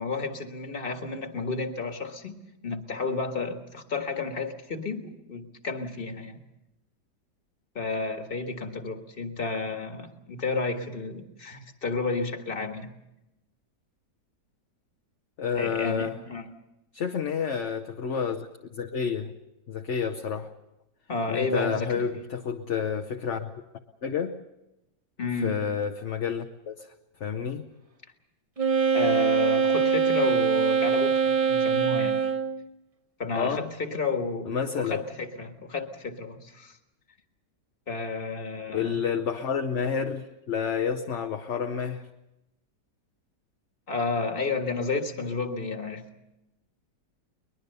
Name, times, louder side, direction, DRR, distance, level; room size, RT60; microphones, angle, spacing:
voice 1, 0.0-6.4 7.7-12.9 15.5-16.5 21.1-22.2 25.2-25.6 28.9-32.2 33.2-36.8 37.9-39.0 43.9-46.0, left 3 dB, 35° left, 6 dB, 1.7 m, -31 dB
voice 2, 15.4-16.2 16.9-18.5 18.7-19.3 19.7-20.5 21.3-23.5 24.0-24.3 25.4-26.9 27.2-27.7 33.3-33.7 34.5-35.0 38.7-42.0, left 6 dB, 50° left, 4 dB, 1.1 m, -29 dB
Wind instrument woodwind instrument, 28.6-32.6, right 6 dB, 30° right, 0.7 m, -23 dB
22.5 x 21.0 x 6.8 m, 0.93 s
omnidirectional pair, 1.8 m